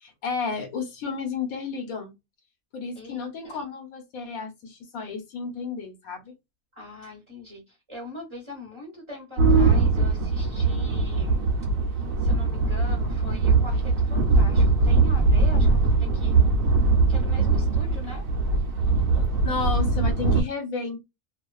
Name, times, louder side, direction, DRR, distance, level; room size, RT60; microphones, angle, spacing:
voice 1, 0.0-2.1 2.7-6.3 19.4-21.0, left 4 dB, 80° left, 1.2 m, -32 dB
voice 2, 2.9-3.7 6.7-11.4 12.2-16.4 17.1-18.3, left 2 dB, 20° right, 1.0 m, -42 dB
sound 1, 9.4-20.4, right 3 dB, 75° right, 1.0 m, -21 dB
2.4 x 2.4 x 2.2 m
omnidirectional pair, 1.5 m